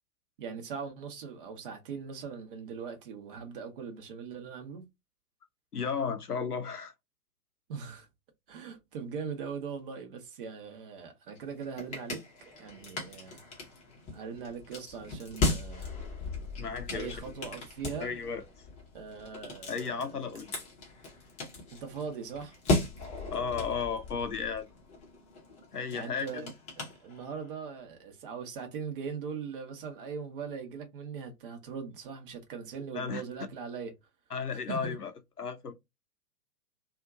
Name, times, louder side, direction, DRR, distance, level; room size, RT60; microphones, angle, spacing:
voice 1, 0.4-4.8 7.7-8.1 8.5-13.4 14.1-15.9 16.9-18.2 18.9-20.4 21.7-22.6 25.9-26.5 26.8-33.9 34.7-35.0, right 6 dB, 35° right, 0.9 m, -40 dB
voice 2, 5.7-6.9 16.6-17.2 18.0-18.4 19.7-20.7 23.3-24.7 25.7-26.4 32.9-33.2 34.3-35.1 35.4-35.7, left 6 dB, 85° left, 0.7 m, -34 dB
sound 1, 11.3-27.6, left 3 dB, 15° left, 0.8 m, -37 dB
2.7 x 2.4 x 2.5 m
figure-of-eight pair, 110°, 44 cm